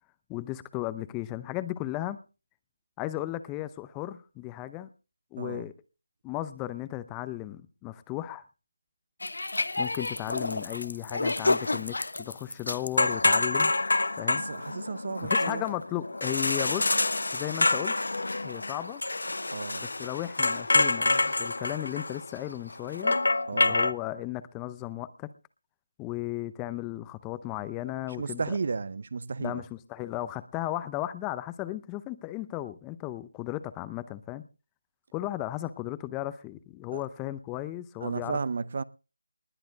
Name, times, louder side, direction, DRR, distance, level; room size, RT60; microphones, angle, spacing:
voice 1, 0.3-2.2 3.0-4.9 5.3-5.7 6.2-8.4 9.8-13.7 14.2-14.4 15.2-16.9 17.3-17.9 18.4-19.0 19.8-23.1 23.5-25.3 26.0-28.6 29.4-34.5 35.1-38.4, left 15 dB, 10° left, 0.6 m, -35 dB
sound 1, 9.2-23.9, left 2 dB, 80° left, 1.0 m, -27 dB
voice 2, 14.3-15.6 19.5-19.9 23.5-23.8 28.2-29.6 36.9-37.0 38.0-38.8, right 4 dB, 45° right, 0.7 m, -33 dB
20.0 x 10.0 x 4.0 m
figure-of-eight pair, 165°, 0 cm